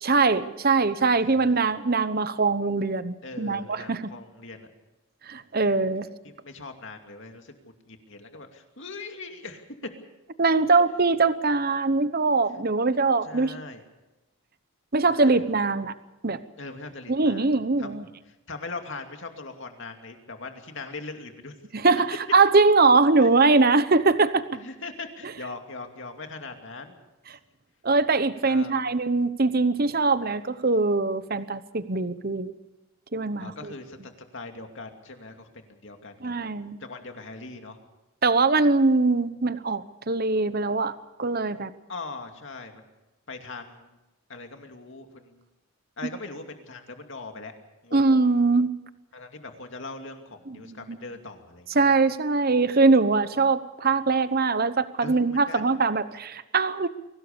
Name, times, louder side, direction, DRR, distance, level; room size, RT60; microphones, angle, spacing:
voice 1, 0.0-4.0 5.3-6.1 10.4-13.5 14.9-15.9 16.2-16.4 17.1-18.0 21.7-24.4 27.8-32.5 33.1-33.7 36.2-36.8 38.2-40.9 41.2-41.7 47.9-48.7 50.5-51.0 51.7-56.9, right 3 dB, 40° right, 13 dB, 0.9 m, -22 dB
voice 2, 1.2-1.6 3.2-4.7 6.2-9.6 13.2-13.8 15.0-15.8 16.6-17.5 17.8-21.5 24.5-27.0 28.4-28.7 33.4-36.3 36.8-37.8 41.9-42.9 43.3-43.9 44.3-45.4 46.0-47.5 47.8-48.0 49.1-51.8 55.0-55.7, left 3 dB, 55° left, 5 dB, 2.6 m, -41 dB
23.0 x 18.0 x 6.8 m, 1.0 s
head